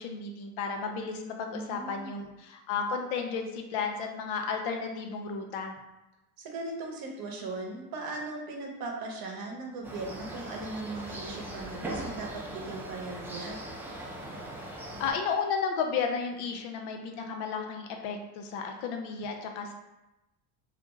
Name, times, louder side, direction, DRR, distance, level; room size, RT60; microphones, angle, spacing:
voice 1, 0.0-5.7 14.6-19.7, left 5 dB, 70° left, 3 dB, 0.6 m, -33 dB
voice 2, 1.5-2.2 6.4-13.6, right 3 dB, 50° right, 0 dB, 0.8 m, -38 dB
sound 1, 9.8-15.1, right 1 dB, 5° right, 0.3 m, -40 dB
2.4 x 2.2 x 3.0 m, 0.96 s
supercardioid pair, 90°, 44 cm